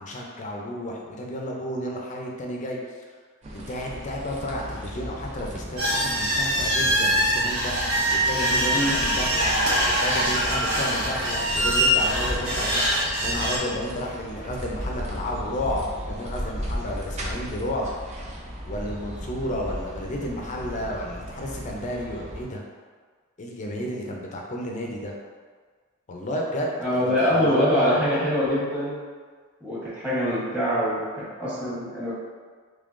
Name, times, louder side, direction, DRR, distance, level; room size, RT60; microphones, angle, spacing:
voice 1, 0.0-2.8 3.5-9.5 9.8-17.9 18.7-22.6 23.4-25.1 26.1-28.0, left 1 dB, 35° left, -1 dB, 0.5 m, -32 dB
sound 1, 3.4-22.4, equal, 30° right, 0.5 m, -36 dB
sound 2, 5.8-13.6, equal, 75° right, 1.1 m, -23 dB
voice 2, 26.8-29.0 29.6-32.1, equal, 10° right, -10 dB, 1.2 m, -24 dB
3.6 x 3.3 x 2.5 m, 1.5 s
head